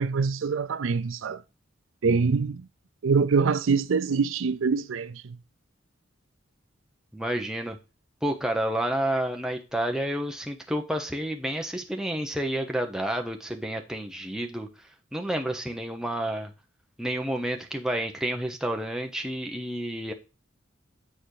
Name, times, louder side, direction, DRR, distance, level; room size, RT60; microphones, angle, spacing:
voice 1, 0.0-1.4 2.0-2.7 3.0-5.4, right 5 dB, 75° right, 0.4 m, -24 dB
voice 2, 7.1-7.8 8.2-14.7 15.1-16.5 17.0-20.1, right 1 dB, 5° right, 1.0 m, -30 dB
9.1 x 4.3 x 4.8 m
head